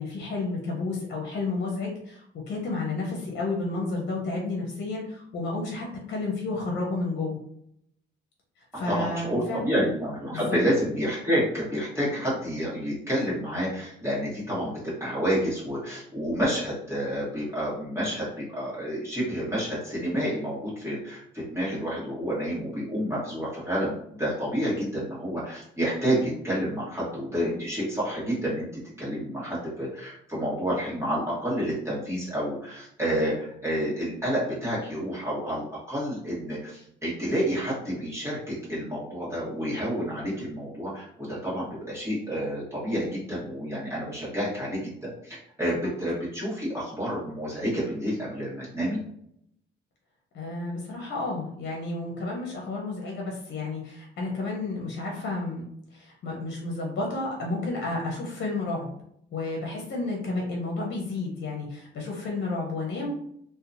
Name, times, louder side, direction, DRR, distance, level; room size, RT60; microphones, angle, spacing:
voice 1, 0.0-7.4 8.6-9.6 10.3-10.6 50.3-55.6 55.9-58.9 59.3-63.1, left 3 dB, 60° left, -1 dB, 0.7 m, -31 dB
voice 2, 8.9-28.7 29.0-49.0, equal, 15° right, -8 dB, 1.2 m, -29 dB
2.8 x 2.2 x 2.5 m, 0.72 s
cardioid pair, 90°, 20 cm